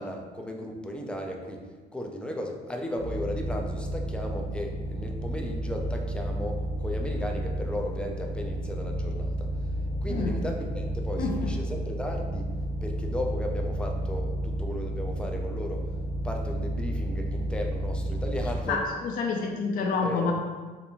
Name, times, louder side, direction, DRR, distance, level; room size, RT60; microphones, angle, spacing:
voice 1, 0.0-9.5 10.0-12.5 12.8-15.9 16.2-18.8 20.0-20.3, left 1 dB, 5° left, 1 dB, 0.4 m, -35 dB
sound 1, 2.9-18.5, right 1 dB, 90° left, 0.8 m, -31 dB
voice 2, 11.2-11.5 18.7-20.3, left 4 dB, 55° left, 1 dB, 0.5 m, -28 dB
4.3 x 2.6 x 2.7 m, 1.4 s
cardioid pair, 110°, 17 cm